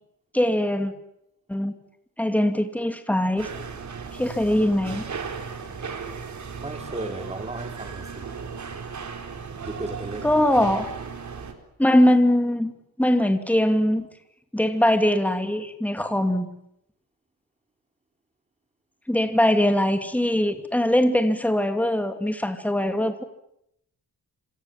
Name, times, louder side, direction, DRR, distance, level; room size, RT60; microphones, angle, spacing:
voice 1, 0.3-0.9 1.5-1.7 2.2-3.5 4.1-5.0 10.2-10.9 11.8-12.7 13.0-14.1 14.5-16.5 19.1-23.2, left 1 dB, 5° left, 2.7 m, -21 dB
sound 1, 3.4-11.5, right 5 dB, 50° right, 4.3 m, -36 dB
voice 2, 6.6-8.3 9.7-10.3, right 2 dB, 15° right, 3.4 m, -35 dB
27.5 x 27.0 x 7.7 m
wide cardioid pair, 170°, 38 cm